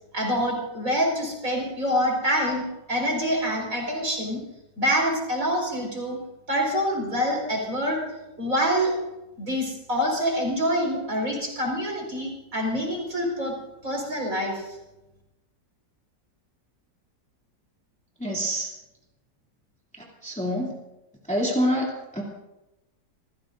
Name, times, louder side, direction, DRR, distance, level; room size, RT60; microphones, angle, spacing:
voice 1, 0.1-4.4 4.8-6.2 6.5-8.0 8.4-8.9 9.4-13.5 13.8-14.7, equal, 50° right, -1 dB, 5.5 m, -26 dB
voice 2, 18.2-18.7 19.9-20.8 21.3-22.2, equal, 5° left, -3 dB, 2.9 m, -27 dB
28.5 x 16.0 x 2.7 m, 0.98 s
omnidirectional pair, 1.9 m